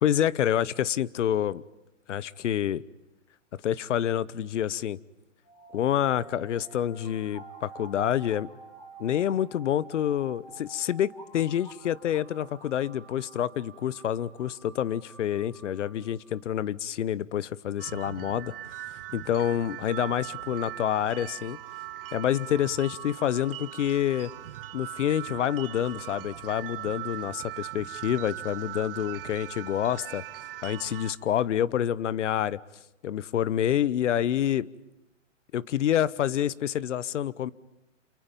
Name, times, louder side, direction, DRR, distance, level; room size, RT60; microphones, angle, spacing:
voice 1, 0.0-1.6 2.1-2.8 3.6-5.0 5.7-8.5 9.0-18.5 19.1-21.6 22.1-24.3 24.7-30.2 30.6-32.6 33.0-34.7 35.5-37.5, left 10 dB, 65° left, 20 dB, 1.0 m, -27 dB
sound 1, 5.4-16.4, right 4 dB, 5° left, 4.9 m, -50 dB
sound 2, 17.8-31.1, right 15 dB, 45° right, 1.3 m, -40 dB
28.5 x 28.0 x 5.4 m, 0.95 s
hypercardioid pair, 155°, 38 cm